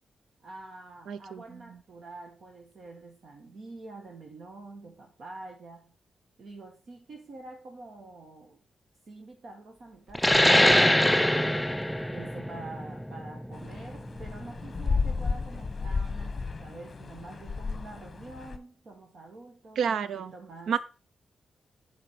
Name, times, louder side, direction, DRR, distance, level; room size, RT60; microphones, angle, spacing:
voice 1, 0.4-5.9 6.4-8.6 9.1-11.7 12.1-20.7, right 2 dB, 55° right, 1.5 m, -46 dB
voice 2, 1.1-1.6 19.8-20.3 20.7-20.8, right 7 dB, 90° right, 0.5 m, -30 dB
sound 1, 10.1-15.3, left 1 dB, 5° left, 0.3 m, -24 dB
sound 2, 13.5-18.6, left 4 dB, 30° left, 1.0 m, -33 dB
7.6 x 5.2 x 5.7 m
wide cardioid pair, 120°, 0 cm